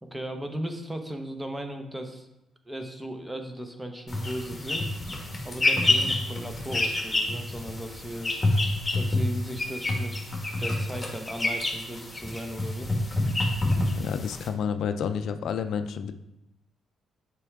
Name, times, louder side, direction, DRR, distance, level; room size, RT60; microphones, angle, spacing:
voice 1, 0.0-2.3 2.7-4.9 5.4-8.5 8.9-10.2 10.6-12.9, right 1 dB, 10° right, 5 dB, 0.8 m, -36 dB
sound 1, 4.1-14.5, left 2 dB, 15° left, 1.7 m, -28 dB
voice 2, 14.0-16.1, left 7 dB, 70° left, 9 dB, 0.4 m, -30 dB
6.9 x 4.6 x 3.6 m, 0.93 s
cardioid pair, 90°, 0 cm